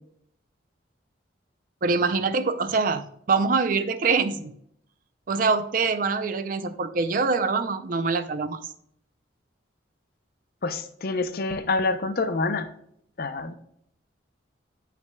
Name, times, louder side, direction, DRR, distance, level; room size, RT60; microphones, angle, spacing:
voice 1, 1.8-4.5 5.3-8.6, right 4 dB, 45° right, 10 dB, 0.4 m, -24 dB
voice 2, 10.6-12.7 13.2-13.5, left 3 dB, 50° left, 9 dB, 0.5 m, -27 dB
9.2 x 5.8 x 2.2 m, 0.69 s
head